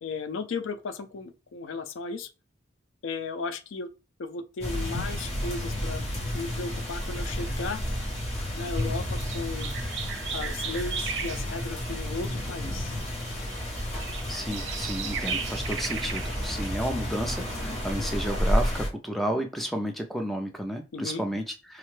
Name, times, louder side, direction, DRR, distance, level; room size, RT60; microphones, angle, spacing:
voice 1, 0.0-2.3 3.0-3.9 4.2-6.0 6.3-7.8 8.6-9.7 10.3-12.9 20.9-21.3, left 4 dB, 85° left, 0.4 m, -35 dB
sound 1, 4.6-18.9, equal, 30° left, 1.0 m, -31 dB
sound 2, 7.2-7.8 8.2-11.9 12.2-12.3 12.5-16.7, right 6 dB, 70° right, 0.5 m, -37 dB
voice 2, 14.3-21.8, equal, ahead, 0.4 m, -32 dB
4.7 x 2.2 x 3.1 m
head